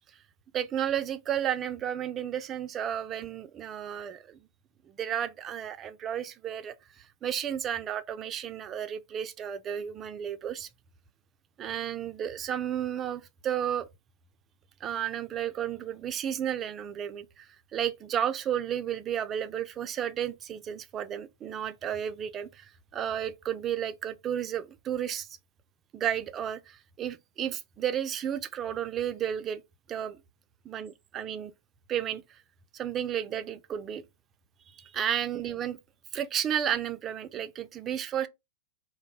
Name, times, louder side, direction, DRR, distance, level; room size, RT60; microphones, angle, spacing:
voice 1, 0.5-4.4 4.9-6.7 7.2-10.7 11.6-13.9 14.8-17.5 17.7-25.3 25.9-29.6 29.9-30.2 30.7-31.5 31.9-32.2 32.7-34.0 34.7-35.8 36.1-38.3, right 9 dB, 30° right, 0.3 m, -32 dB
2.2 x 2.1 x 3.1 m
hypercardioid pair, 105°, 0 cm